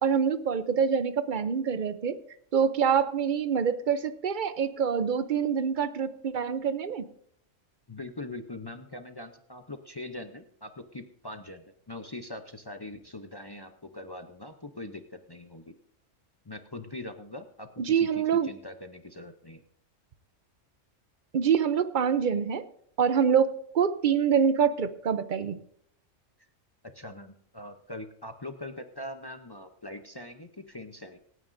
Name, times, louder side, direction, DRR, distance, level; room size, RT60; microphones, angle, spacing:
voice 1, 0.0-2.2 2.5-7.1 17.8-18.5 21.3-22.6 23.0-25.6, right 7 dB, 50° right, 13 dB, 0.7 m, -25 dB
voice 2, 7.9-15.7 16.4-19.6 26.8-31.2, left 2 dB, 25° left, 7 dB, 0.5 m, -42 dB
26.5 x 9.5 x 2.6 m, 0.66 s
omnidirectional pair, 1.3 m